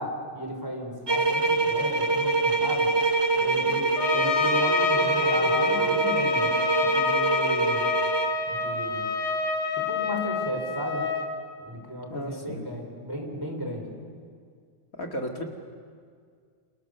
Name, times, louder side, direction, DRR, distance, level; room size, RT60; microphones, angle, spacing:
voice 1, 0.0-2.9 3.4-7.9 8.5-9.1 9.8-11.1 11.6-14.0, equal, 10° right, 1 dB, 4.6 m, -35 dB
sound 1, 1.1-8.4, right 3 dB, 35° right, 0.4 m, -25 dB
Wind instrument woodwind instrument, 3.3-8.3, right 1 dB, 55° right, 3.9 m, -42 dB
Trumpet, 4.0-11.3, left 5 dB, 75° left, 3.6 m, -27 dB
voice 2, 12.1-12.7 14.9-15.4, left 1 dB, 40° left, 2 dB, 2.5 m, -34 dB
30.0 x 27.5 x 6.8 m, 2.1 s
omnidirectional pair, 2.3 m